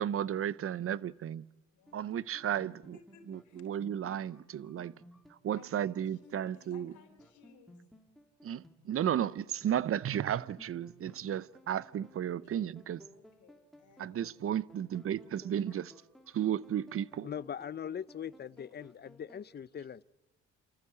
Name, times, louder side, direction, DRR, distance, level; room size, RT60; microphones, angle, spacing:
voice 1, 0.0-1.5 1.9-3.0 3.3-4.9 5.4-6.9 8.4-13.1 14.0-15.9 16.3-17.3, right 10 dB, 50° right, 0.7 m, -34 dB
voice 2, 1.7-2.1 2.9-3.7 5.5-7.8 13.1-14.3, left 5 dB, 75° left, 3.9 m, -60 dB
sound 1, 1.9-19.4, left 1 dB, ahead, 3.0 m, -59 dB
voice 3, 17.2-20.0, left 8 dB, 35° left, 0.6 m, -41 dB
28.0 x 14.5 x 8.2 m
cardioid pair, 90°, 30 cm